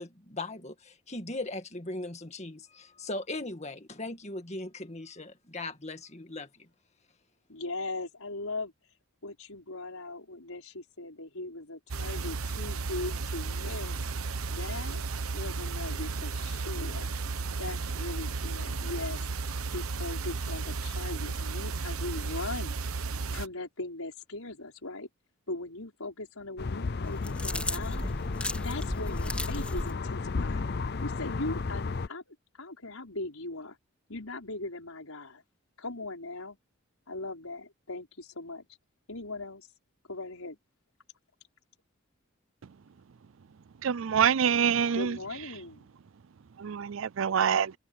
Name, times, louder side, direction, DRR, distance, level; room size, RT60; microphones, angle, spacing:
voice 1, 0.0-6.7, left 2 dB, 30° left, 2.1 m, -39 dB
voice 2, 7.5-8.7 9.2-14.1 14.5-15.0 15.3-17.1 17.6-19.2 19.7-22.8 23.1-25.1 25.5-28.1 28.6-30.6 31.0-33.8 34.1-35.4 35.8-36.6 37.1-38.7 39.1-39.7 40.1-40.6 44.9-45.9, left 2 dB, 85° left, 5.4 m, -39 dB
sound 1, 11.9-23.5, right 4 dB, 85° right, 1.1 m, -34 dB
sound 2, 26.6-32.1, left 4 dB, 50° left, 0.6 m, -33 dB
sound 3, 27.0-29.9, left 1 dB, 5° left, 3.6 m, -35 dB
voice 3, 43.8-45.2 46.6-47.7, right 7 dB, 65° right, 0.4 m, -25 dB
open air
head